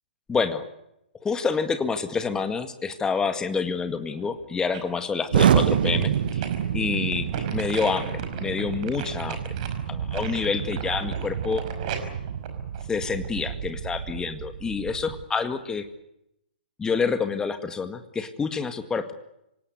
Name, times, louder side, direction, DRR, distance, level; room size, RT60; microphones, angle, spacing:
voice 1, 0.3-0.7 1.2-6.5 6.7-9.4 9.9-11.6 12.9-15.9 16.8-19.1, left 5 dB, 10° left, 9 dB, 1.9 m, -28 dB
sound 1, 4.2-5.0 5.4-13.5 13.9-14.0, right 7 dB, 45° right, 5.4 m, -38 dB
Explosion, 5.3-15.2, right 8 dB, 60° right, 1.6 m, -28 dB
26.5 x 17.5 x 9.7 m, 0.84 s
figure-of-eight pair, 120°, 6 cm